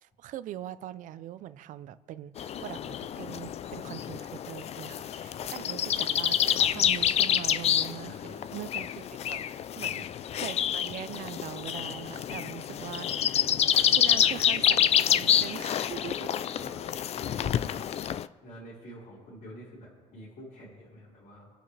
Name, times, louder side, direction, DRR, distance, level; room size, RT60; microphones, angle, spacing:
voice 1, 0.0-10.1 10.3-13.5 13.8-16.3, right 12 dB, 70° right, 15 dB, 0.6 m, -42 dB
sound 1, 2.4-18.3, left 10 dB, 50° left, 0.4 m, -28 dB
voice 2, 8.0-8.5 9.8-10.0 14.1-14.4 16.4-16.9 17.1-17.9 18.4-21.5, equal, 65° left, -8 dB, 4.9 m, -48 dB
26.0 x 9.0 x 3.3 m, 1.5 s
cardioid pair, 100°, 14 cm